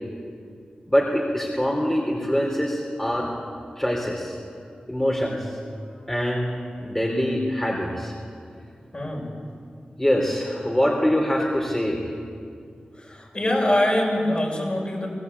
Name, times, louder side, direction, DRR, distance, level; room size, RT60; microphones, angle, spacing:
voice 1, 0.9-3.3 3.8-4.4 4.9-5.6 6.1-6.5 6.8-8.1 10.0-12.1, equal, 15° left, -1 dB, 3.7 m, -24 dB
voice 2, 8.9-9.3 12.9-15.1, left 1 dB, 40° left, -2 dB, 7.3 m, -24 dB
24.0 x 17.5 x 8.5 m, 2.4 s
cardioid pair, 45°, 3 cm